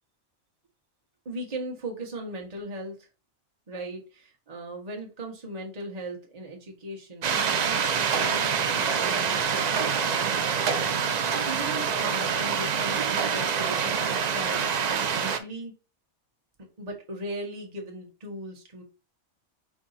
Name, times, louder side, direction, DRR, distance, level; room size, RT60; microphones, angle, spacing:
voice 1, 1.2-3.1 3.7-15.7 16.8-18.8, right 1 dB, 35° right, 0 dB, 1.1 m, -38 dB
sound 1, 7.2-15.4, right 6 dB, 65° right, 0.4 m, -26 dB
4.9 x 2.6 x 4.0 m, 0.31 s
omnidirectional pair, 1.3 m